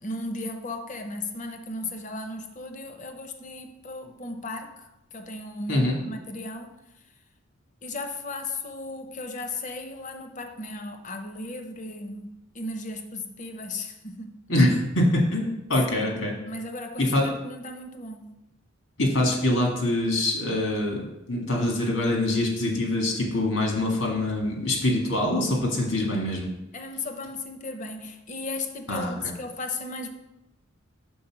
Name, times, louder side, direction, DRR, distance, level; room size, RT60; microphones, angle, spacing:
voice 1, 0.0-6.7 7.8-14.4 15.9-16.2 16.5-18.3 26.7-30.1, left 2 dB, 35° left, 6 dB, 0.7 m, -36 dB
voice 2, 14.5-16.3 17.0-17.3 19.0-26.5 28.9-29.1, left 1 dB, 75° left, 0 dB, 1.8 m, -24 dB
5.4 x 4.2 x 5.9 m, 0.92 s
head